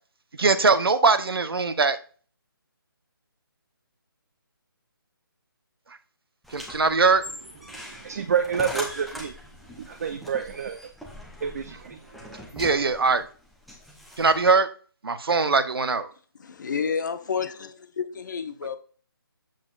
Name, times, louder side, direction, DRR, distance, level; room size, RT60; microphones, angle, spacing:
voice 1, 0.4-2.0 6.5-7.2 12.5-13.2 14.2-14.7 15.0-16.1, right 4 dB, 75° right, 0.8 m, -21 dB
sound 1, 6.4-14.6, left 1 dB, ahead, 0.7 m, -41 dB
voice 2, 7.7-9.3 9.8-10.9 11.4-12.4, right 7 dB, 40° right, 0.6 m, -29 dB
voice 3, 16.4-18.8, left 6 dB, 50° left, 1.0 m, -30 dB
7.5 x 7.4 x 2.5 m
figure-of-eight pair, 155°, 12 cm